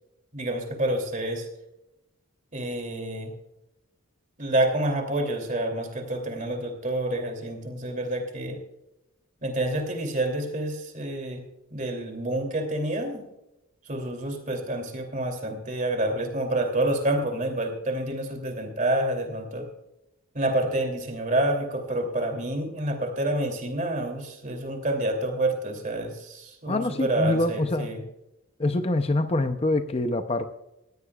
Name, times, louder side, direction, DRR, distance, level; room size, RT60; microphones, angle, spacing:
voice 1, 0.3-1.5 2.5-3.3 4.4-8.6 9.4-11.4 11.7-13.3 13.8-19.7 20.3-28.0, right 1 dB, 35° right, 4 dB, 2.8 m, -28 dB
voice 2, 26.7-27.9 28.6-30.5, left 2 dB, 30° left, 9 dB, 0.6 m, -25 dB
19.0 x 16.0 x 2.4 m, 0.90 s
head